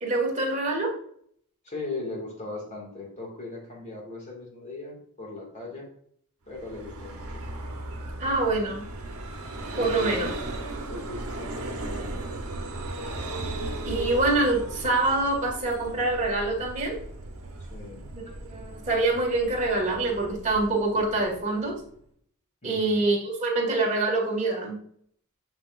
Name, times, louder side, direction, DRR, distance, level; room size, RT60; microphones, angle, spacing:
voice 1, 0.0-0.9 8.2-8.8 9.8-10.3 13.9-17.0 18.5-21.7 22.6-24.8, right 2 dB, 35° right, -2 dB, 1.9 m, -25 dB
voice 2, 1.6-5.9 6.5-7.4 9.7-10.3 10.9-12.2 17.7-18.1 22.6-23.0, left 2 dB, 35° left, -2 dB, 2.1 m, -38 dB
Vehicle, 6.5-22.0, right 2 dB, 75° right, 1.1 m, -37 dB
6.5 x 5.9 x 2.5 m, 0.64 s
head